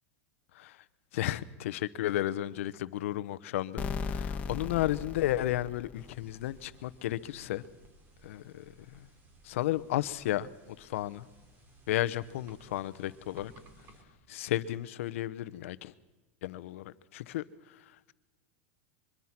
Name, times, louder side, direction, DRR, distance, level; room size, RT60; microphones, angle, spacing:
voice 1, 1.1-7.6 8.2-9.1 9.4-10.5 10.8-11.2 11.9-13.5 14.3-15.9 16.4-17.4, left 14 dB, 75° left, 15 dB, 1.0 m, -33 dB
sound 1, 3.8-6.5, left 5 dB, 20° left, 1.4 m, -37 dB
sound 2, 5.9-14.0, right 2 dB, 25° right, 3.7 m, -59 dB
24.0 x 22.5 x 6.0 m, 1.1 s
supercardioid pair, 155°, 7 cm